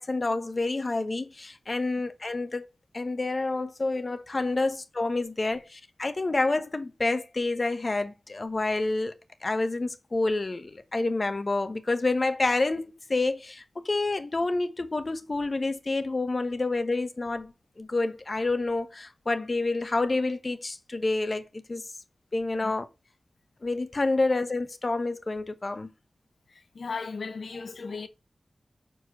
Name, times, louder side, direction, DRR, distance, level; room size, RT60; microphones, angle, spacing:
voice 1, 0.0-2.7 2.9-21.9 22.3-22.9 23.6-25.9, left 2 dB, 40° left, 1.0 m, -28 dB
voice 2, 26.5-28.1, left 4 dB, 75° left, 1.0 m, -36 dB
6.6 x 4.6 x 6.1 m
wide cardioid pair, 75°, 0 cm